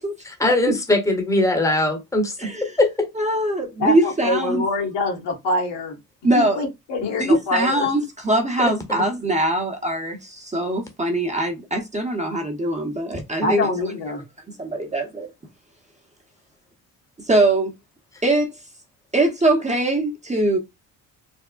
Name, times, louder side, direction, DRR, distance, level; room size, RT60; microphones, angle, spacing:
voice 1, 0.2-3.1 8.6-9.0, left 2 dB, 5° left, 1.0 m, -21 dB
voice 2, 3.2-4.6 6.2-6.6 7.2-13.7 14.7-15.3 17.3-17.7 18.2-18.5 19.1-20.6, right 1 dB, 15° right, 0.9 m, -22 dB
voice 3, 3.8-6.0 6.3-7.9 13.4-14.2, left 2 dB, 75° left, 1.5 m, -24 dB
3.4 x 2.0 x 2.4 m
supercardioid pair, 65°, 42 cm